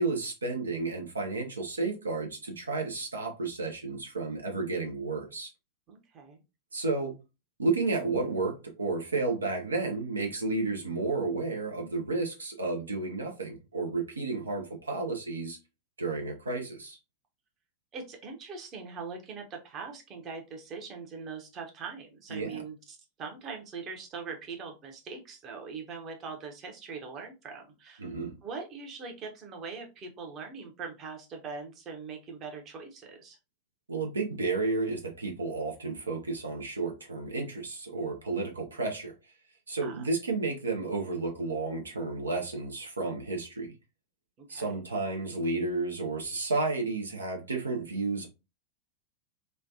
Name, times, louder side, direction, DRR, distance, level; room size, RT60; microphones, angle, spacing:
voice 1, 0.0-5.5 6.7-7.2 7.6-15.6 16.0-17.0 22.3-22.6 28.0-28.4 33.9-39.1 39.7-43.7 44.5-48.3, right 3 dB, 75° right, 0.6 m, -32 dB
voice 2, 5.9-6.4 17.9-28.1 28.4-33.4 39.8-40.1 44.4-44.7, right 5 dB, 30° right, 0.9 m, -42 dB
3.2 x 2.2 x 2.6 m
figure-of-eight pair, 90°, 0 cm